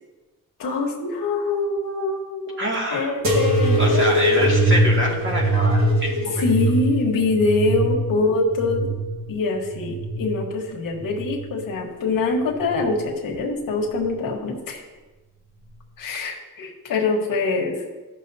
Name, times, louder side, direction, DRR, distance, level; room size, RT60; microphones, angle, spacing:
voice 1, 0.6-2.6 2.9-4.1 6.4-8.9 9.3-14.8 16.0-17.8, left 3 dB, 90° left, 0 dB, 1.5 m, -24 dB
voice 2, 2.6-3.2 3.8-6.5, right 1 dB, 35° right, -2 dB, 2.0 m, -26 dB
sound 1, 3.2-10.5 11.0-11.8 12.5-13.0 14.0-14.1, right 1 dB, 55° right, 1.8 m, -22 dB
14.0 x 6.3 x 2.8 m, 1.2 s
wide cardioid pair, 135°, 33 cm